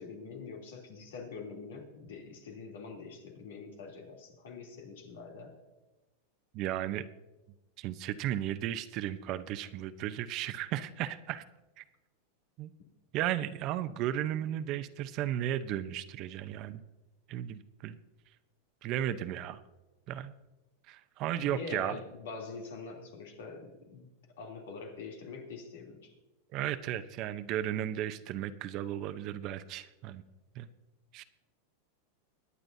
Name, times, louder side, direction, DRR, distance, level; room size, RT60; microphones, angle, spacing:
voice 1, 0.0-5.6 21.4-24.1 24.4-26.1, left 4 dB, 80° left, 1 dB, 3.0 m, -44 dB
voice 2, 6.5-7.0 7.8-11.4 11.8-11.9 12.6-12.7 13.1-16.8 17.3-18.0 18.8-19.6 20.1-20.3 20.9-22.0 26.5-30.2 30.5-30.7 31.1-31.2, right 12 dB, 45° right, 13 dB, 0.7 m, -35 dB
23.5 x 9.8 x 2.7 m, 1.1 s
supercardioid pair, 130°, 0 cm